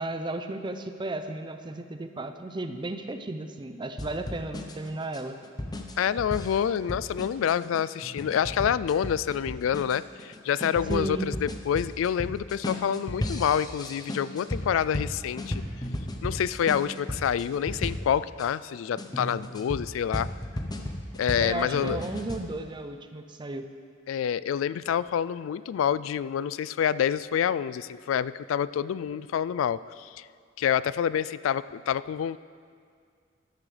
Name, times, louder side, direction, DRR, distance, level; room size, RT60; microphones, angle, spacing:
voice 1, 0.0-5.4 10.9-11.3 21.4-23.6, right 2 dB, 25° right, 8 dB, 0.6 m, -34 dB
sound 1, 4.0-18.5 19.0-22.4, left 1 dB, 20° left, 0.8 m, -35 dB
voice 2, 6.0-15.6 16.2-20.3 21.2-22.0 24.1-30.3 30.6-32.4, left 8 dB, 90° left, 17 dB, 0.3 m, -27 dB
13.0 x 12.5 x 3.3 m, 2.1 s
head